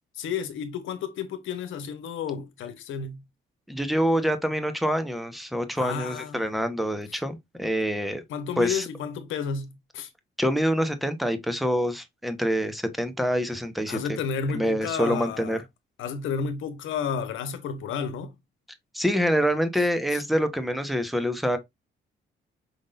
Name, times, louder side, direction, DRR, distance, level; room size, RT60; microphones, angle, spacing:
voice 1, 0.2-3.2 5.7-6.4 8.3-10.1 13.9-15.6 16.0-18.3 20.1-20.2, left 6 dB, 85° left, 1.0 m, -31 dB
voice 2, 3.7-8.2 8.6-8.8 10.4-14.2 14.5-15.6 18.9-21.6, equal, ahead, 1.0 m, -26 dB
5.5 x 3.6 x 2.5 m
cardioid pair, 90°, 20 cm